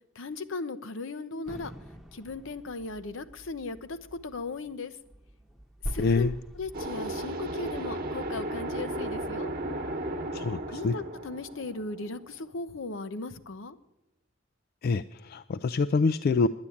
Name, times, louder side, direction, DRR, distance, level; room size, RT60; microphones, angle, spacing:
voice 1, 0.2-1.7 2.1-4.9 5.9-6.3 6.5-9.5 10.7-13.8, left 3 dB, 75° left, 12 dB, 0.8 m, -37 dB
sound 1, 1.5-7.8, equal, ahead, 0.9 m, -43 dB
voice 2, 6.0-6.3 10.3-10.9 14.8-16.5, left 4 dB, 50° left, 13 dB, 0.3 m, -26 dB
sound 2, 6.7-12.4, right 1 dB, 50° right, 1.1 m, -35 dB
10.5 x 9.7 x 8.5 m, 0.92 s
head